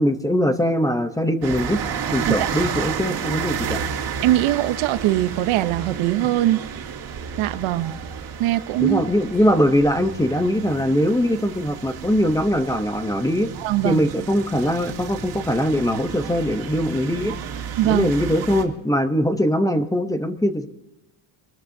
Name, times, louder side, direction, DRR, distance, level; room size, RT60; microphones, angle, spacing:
voice 1, 0.0-1.8 2.1-3.8 8.8-13.5 13.8-17.4 17.9-20.7, equal, 5° left, 0.7 m, -21 dB
sound 1, 1.4-18.6, right 7 dB, 50° right, 2.3 m, -32 dB
voice 2, 4.2-6.6 7.4-7.9 8.4-9.0 13.6-14.0 17.3-17.4 17.8-18.1, right 15 dB, 80° right, 0.9 m, -21 dB
24.5 x 13.5 x 2.7 m
cardioid pair, 160°, 47 cm